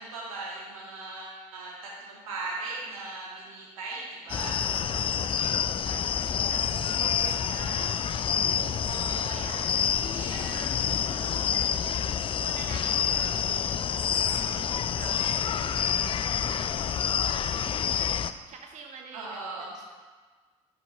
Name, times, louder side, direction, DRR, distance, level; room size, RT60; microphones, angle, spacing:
voice 1, 0.0-4.6 8.9-10.6 11.1-11.5 13.2-13.6 19.1-19.7, right 3 dB, 75° right, -5 dB, 2.1 m, -39 dB
sound 1, 4.3-18.3, left 8 dB, 30° left, 0.4 m, -28 dB
voice 2, 4.5-19.9, right 5 dB, 40° right, 3 dB, 0.7 m, -48 dB
12.5 x 5.8 x 2.8 m, 1.4 s
figure-of-eight pair, 55°, 18 cm